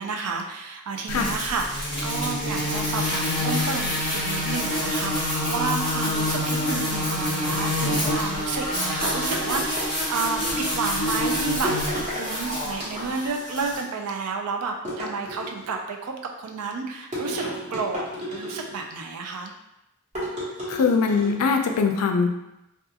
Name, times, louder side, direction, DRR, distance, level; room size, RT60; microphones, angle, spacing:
voice 1, 0.0-11.7 12.2-19.5, right 4 dB, 90° right, 3 dB, 0.4 m, -31 dB
sound 1, 1.1-13.8, left 1 dB, 5° left, 0.8 m, -27 dB
sound 2, 9.0-10.4 11.6-12.3 12.7-13.4 14.9-15.8 17.1-18.9 20.1-21.4, equal, 35° right, 0.9 m, -32 dB
voice 2, 20.7-22.3, left 5 dB, 80° left, 4 dB, 0.4 m, -22 dB
2.3 x 2.3 x 2.7 m, 0.88 s
head